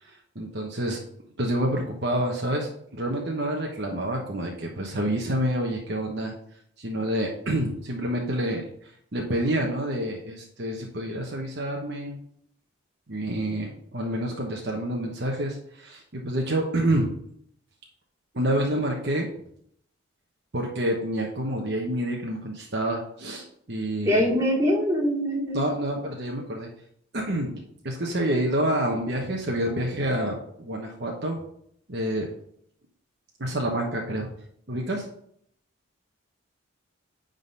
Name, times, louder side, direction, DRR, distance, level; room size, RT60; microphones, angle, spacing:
voice 1, 0.0-1.0 1.4-6.3 6.8-12.2 13.1-17.1 18.3-19.3 20.5-24.2 25.5-26.7 27.1-31.4 31.9-32.3 33.4-34.3 34.7-35.1, right 1 dB, 50° right, 0 dB, 1.1 m, -28 dB
voice 2, 24.0-25.6, equal, 15° right, -5 dB, 2.6 m, -23 dB
9.6 x 4.0 x 5.2 m, 0.68 s
head